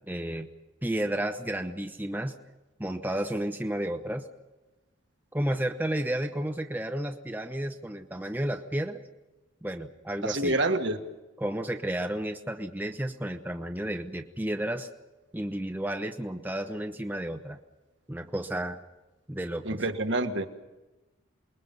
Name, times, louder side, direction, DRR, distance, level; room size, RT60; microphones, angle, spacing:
voice 1, 0.1-0.5 0.8-2.4 2.8-4.2 5.3-9.0 9.6-10.5 11.4-14.9 15.3-17.6 18.1-18.8 19.3-19.8, right 1 dB, 10° right, 5 dB, 0.8 m, -32 dB
voice 2, 10.2-11.0 19.6-20.5, right 2 dB, 65° right, 6 dB, 1.6 m, -27 dB
28.0 x 21.5 x 5.4 m, 1.1 s
head